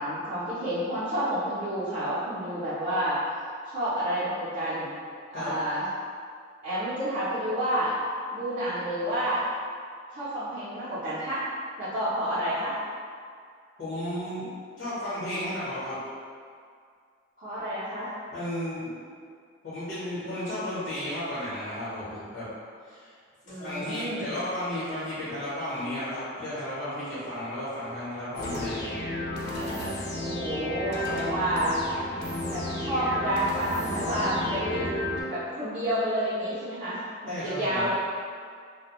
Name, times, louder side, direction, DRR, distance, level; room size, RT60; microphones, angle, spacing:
voice 1, 0.0-3.2 3.6-4.9 5.3-5.9 6.6-8.0 8.3-9.4 10.1-11.4 11.8-12.8 15.4-15.6 17.4-18.1 23.4-24.3 30.2-31.8 32.5-34.9 35.3-37.9, equal, 40° right, -12 dB, 0.5 m, -29 dB
voice 2, 13.8-14.5 14.8-16.0 18.3-18.9 19.6-22.5 22.8-23.1 23.5-28.9 37.3-37.9, left 1 dB, 70° left, -12 dB, 0.9 m, -33 dB
sound 1, 28.4-35.2, left 1 dB, 55° left, 0.4 m, -32 dB
2.4 x 2.1 x 2.9 m, 2.2 s
head